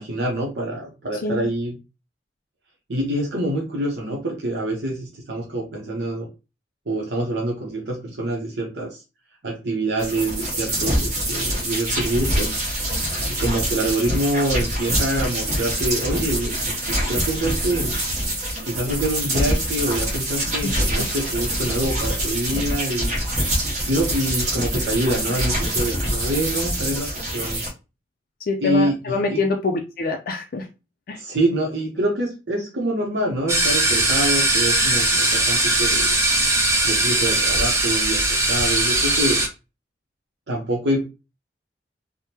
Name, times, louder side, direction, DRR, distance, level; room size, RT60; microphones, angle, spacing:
voice 1, 0.0-1.8 2.9-6.3 6.9-9.0 9.4-12.6 13.3-18.0 18.6-23.1 23.9-27.6 28.6-29.4 31.1-36.1 36.8-39.4 40.5-41.1, right 1 dB, 75° right, -2 dB, 0.8 m, -26 dB
sound 1, 10.0-27.7, right 1 dB, 45° right, 1.1 m, -25 dB
voice 2, 20.6-21.1 28.5-30.7 31.1-31.2, left 3 dB, 55° left, 2 dB, 0.4 m, -25 dB
sound 2, 33.5-39.5, right 2 dB, 15° right, 0.6 m, -20 dB
3.5 x 2.1 x 2.7 m, 0.28 s
head